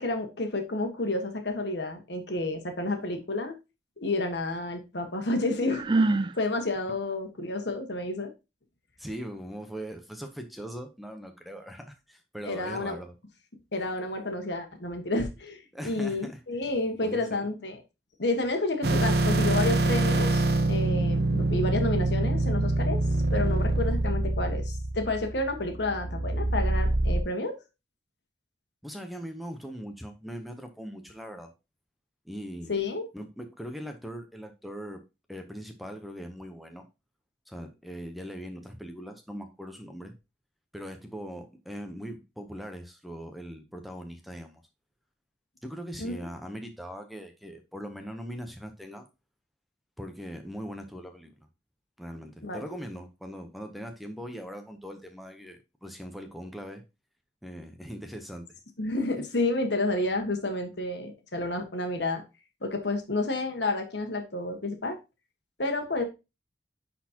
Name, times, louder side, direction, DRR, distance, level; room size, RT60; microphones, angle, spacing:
voice 1, 0.0-3.6 4.0-6.0 6.3-8.3 12.5-13.0 13.7-17.8 18.2-23.0 23.3-27.6 32.7-33.1 46.0-46.2 52.4-52.6 58.8-62.2 62.6-65.0 65.6-66.0, left 2 dB, 75° left, 1.4 m, -30 dB
Sigh, 5.7-6.4, right 2 dB, 25° right, 0.3 m, -24 dB
voice 2, 9.0-13.2 15.7-16.4 17.0-17.4 28.8-31.5 32.3-32.7 33.1-35.0 35.3-36.9 37.5-40.1 40.7-44.6 45.6-49.1 50.0-51.3 52.0-56.8 57.4-58.6, equal, ahead, 0.7 m, -40 dB
sound 1, 18.8-27.2, right 2 dB, 60° right, 0.7 m, -25 dB
10.0 x 4.2 x 2.8 m
head